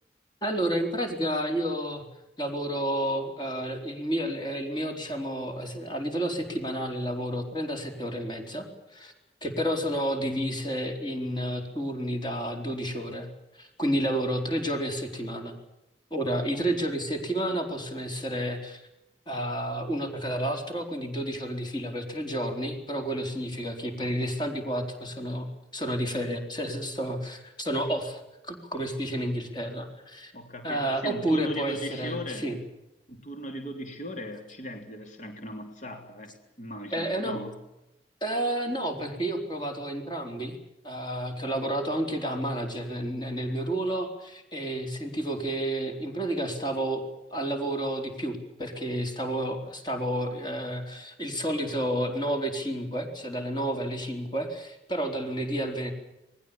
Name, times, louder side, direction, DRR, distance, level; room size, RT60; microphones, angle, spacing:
voice 1, 0.4-2.0 2.4-9.1 9.4-13.3 13.5-15.5 16.1-18.9 19.3-30.3 30.6-32.6 36.9-37.4 38.2-40.6 40.8-55.9, right 1 dB, 25° left, 3 dB, 4.3 m, -30 dB
voice 2, 30.3-32.5 33.1-37.5, equal, 45° left, 4 dB, 3.2 m, -38 dB
28.5 x 20.5 x 7.2 m, 0.92 s
head